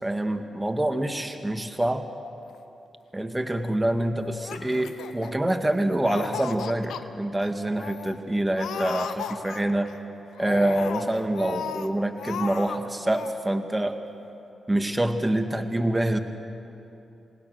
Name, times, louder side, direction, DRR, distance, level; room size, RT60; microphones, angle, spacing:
voice 1, 0.0-2.0 3.1-9.9 10.4-14.0 14.7-16.2, right 1 dB, 15° right, 6 dB, 1.8 m, -26 dB
Laughter, 4.3-5.7 6.0-7.0 7.4-7.5 7.8-8.2 8.5-9.9 10.3-11.9 12.2-12.8 13.0-13.3, left 8 dB, 80° left, 0.8 m, -35 dB
27.5 x 19.0 x 6.6 m, 2.9 s
supercardioid pair, 45°, 0 cm